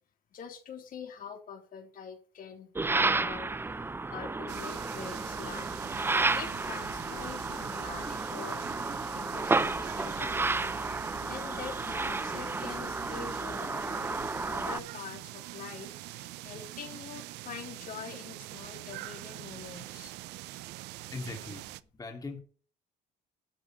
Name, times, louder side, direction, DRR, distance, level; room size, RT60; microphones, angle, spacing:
voice 1, 0.3-3.5 4.1-5.7 6.3-10.8 11.3-20.1, left 7 dB, 55° left, 3 dB, 3.3 m, -45 dB
sound 1, 2.8-14.8, right 3 dB, 15° right, 0.6 m, -32 dB
sound 2, 4.5-21.8, right 18 dB, 90° right, 0.6 m, -44 dB
voice 2, 20.7-22.4, left 3 dB, 20° left, 2 dB, 2.8 m, -42 dB
12.5 x 5.2 x 8.8 m, 0.41 s
cardioid pair, 110°, 17 cm